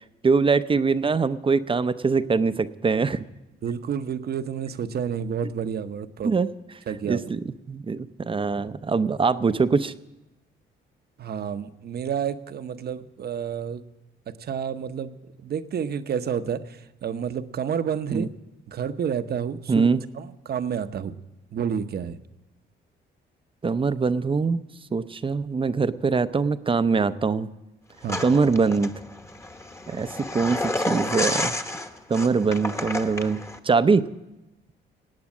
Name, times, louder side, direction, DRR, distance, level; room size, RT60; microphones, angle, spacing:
voice 1, 0.2-3.2 6.2-6.5 7.0-7.4 7.7-9.9 18.1-18.3 19.7-20.0 23.6-24.6 24.9-27.5 28.2-28.9 29.9-31.6 32.1-34.1, right 4 dB, 25° right, 13 dB, 0.6 m, -23 dB
voice 2, 3.6-6.3 6.9-7.3 11.2-13.8 14.3-18.3 18.7-19.9 20.1-21.2 21.5-22.2 28.0-28.2, right 7 dB, 55° right, 11 dB, 0.8 m, -30 dB
sound 1, 28.1-33.6, left 1 dB, 15° left, 1.1 m, -30 dB
18.0 x 8.7 x 7.3 m, 0.99 s
cardioid pair, 90°, 20 cm